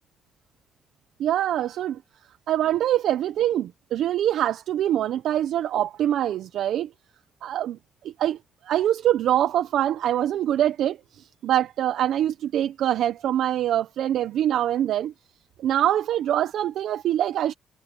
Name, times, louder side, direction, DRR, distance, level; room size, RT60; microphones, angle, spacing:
voice 1, 1.2-2.0 2.5-6.9 7.4-7.8 8.0-8.4 8.6-15.1 15.6-17.5, right 11 dB, 75° right, 0.8 m, -24 dB
cardioid pair, 90°, 0 cm